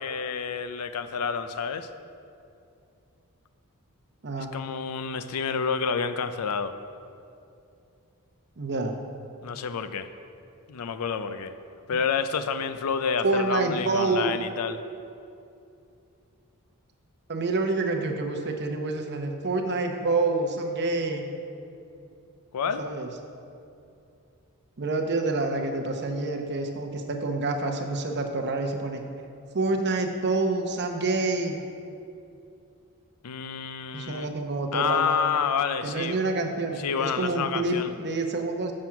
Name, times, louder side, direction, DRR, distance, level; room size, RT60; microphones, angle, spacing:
voice 1, 0.0-1.9 4.4-6.7 9.4-10.1 10.7-11.5 11.9-14.8 22.5-22.8 33.2-34.3 34.7-36.2 36.8-37.9, left 6 dB, 80° left, 10 dB, 0.5 m, -29 dB
voice 2, 8.6-8.9 13.2-14.3 17.3-21.3 22.8-23.1 24.8-29.0 29.5-31.6 33.9-35.3 35.8-38.7, right 3 dB, 50° right, 3 dB, 0.8 m, -27 dB
7.5 x 6.0 x 5.8 m, 2.6 s
head